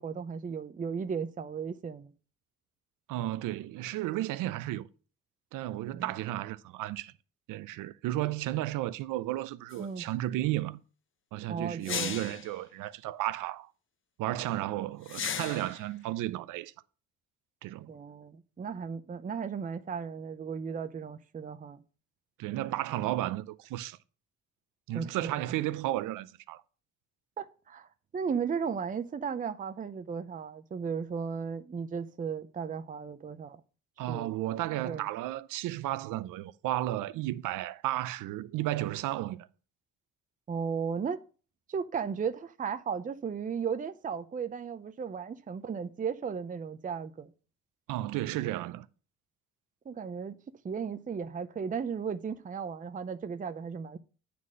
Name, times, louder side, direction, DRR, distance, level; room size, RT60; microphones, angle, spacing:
voice 1, 0.0-2.1 5.9-6.1 9.8-10.1 11.5-12.2 17.9-21.8 24.9-25.5 27.4-27.9 28.1-33.6 34.1-34.3 34.8-35.1 40.5-41.2 41.7-47.3 49.9-50.4 50.6-54.0, right 6 dB, 25° right, 0.6 m, -35 dB
voice 2, 3.1-4.9 5.5-7.1 7.5-10.8 11.3-13.7 14.2-16.7 17.6-17.9 22.4-24.0 24.9-26.6 34.0-39.5 47.9-48.9, right 15 dB, 75° right, 0.7 m, -33 dB
sound 1, 9.7-9.8 11.8-12.5 15.1-15.8, left 8 dB, 40° left, 0.7 m, -35 dB
9.3 x 4.3 x 6.3 m
cardioid pair, 85°, 32 cm